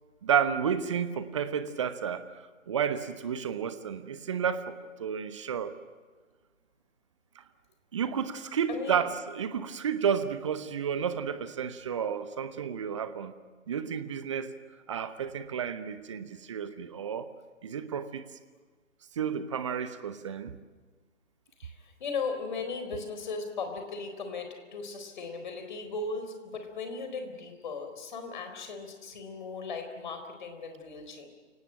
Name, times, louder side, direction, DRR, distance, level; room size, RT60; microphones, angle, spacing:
voice 1, 0.2-5.7 7.3-7.4 7.9-13.3 13.7-14.5 14.9-17.3 17.6-18.3 19.1-20.6, right 7 dB, 25° right, 12 dB, 1.1 m, -31 dB
voice 2, 8.7-9.0 21.6-31.3, left 4 dB, 40° left, 6 dB, 4.3 m, -37 dB
29.5 x 18.0 x 9.0 m, 1.4 s
figure-of-eight pair, 140°, 38 cm